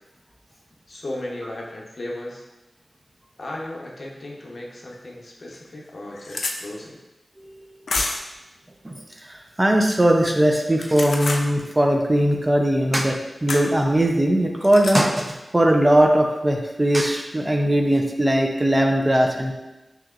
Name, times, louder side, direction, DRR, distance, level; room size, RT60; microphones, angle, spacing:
voice 1, 0.9-2.4 3.4-7.0, left 1 dB, 55° left, -2 dB, 0.8 m, -35 dB
sound 1, 4.9-5.0 5.5-5.6 5.8-6.6 7.9-8.3 10.7-11.5 13.5-13.7 14.6-15.0, left 3 dB, 90° left, 0.4 m, -28 dB
voice 2, 7.4-7.7 8.8-19.5, right 1 dB, 20° right, 2 dB, 0.4 m, -20 dB
5.8 x 2.9 x 2.4 m, 1.0 s
wide cardioid pair, 90°, 0 cm